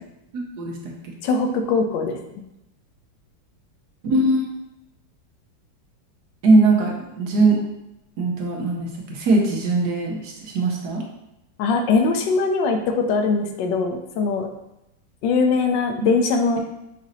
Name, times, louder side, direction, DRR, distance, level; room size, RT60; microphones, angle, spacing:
voice 1, 1.2-2.4 11.6-14.5 15.2-16.6, left 4 dB, 80° left, 5 dB, 1.2 m, -21 dB
voice 2, 4.0-4.5 6.4-7.6 8.2-11.0 16.0-16.1, right 2 dB, 65° right, -1 dB, 1.2 m, -20 dB
5.0 x 2.7 x 3.9 m, 0.88 s
omnidirectional pair, 2.0 m